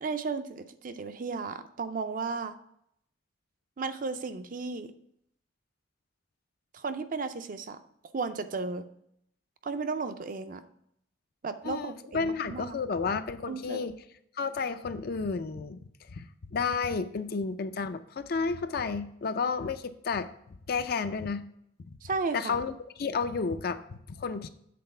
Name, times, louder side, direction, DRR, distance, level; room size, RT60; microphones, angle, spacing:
voice 1, 0.0-2.5 3.8-4.9 6.7-7.8 8.1-8.8 9.6-10.6 11.4-12.8 13.5-13.9 22.0-22.6, right 4 dB, 45° right, 9 dB, 0.5 m, -34 dB
voice 2, 11.6-13.9 14.4-15.8 16.1-20.3 20.7-21.4 22.3-24.5, left 5 dB, 50° left, 11 dB, 0.4 m, -31 dB
7.7 x 3.9 x 5.4 m, 0.72 s
head